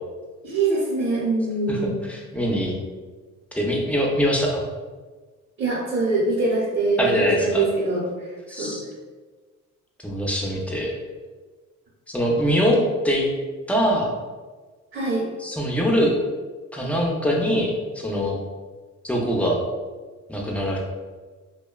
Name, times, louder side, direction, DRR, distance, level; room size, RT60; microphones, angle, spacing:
voice 1, 0.4-1.9 5.6-8.3 8.6-8.8 14.9-15.2, right 3 dB, 40° right, -10 dB, 0.7 m, -23 dB
voice 2, 2.1-2.7 3.5-4.6 7.0-7.6 8.5-8.8 10.0-10.9 12.1-12.8 13.0-13.3 13.7-14.1 15.4-16.2 16.7-18.4 19.0-19.6 20.3-20.8, equal, 5° left, -2 dB, 0.4 m, -23 dB
2.7 x 2.1 x 2.2 m, 1.4 s
cardioid pair, 90°, 30 cm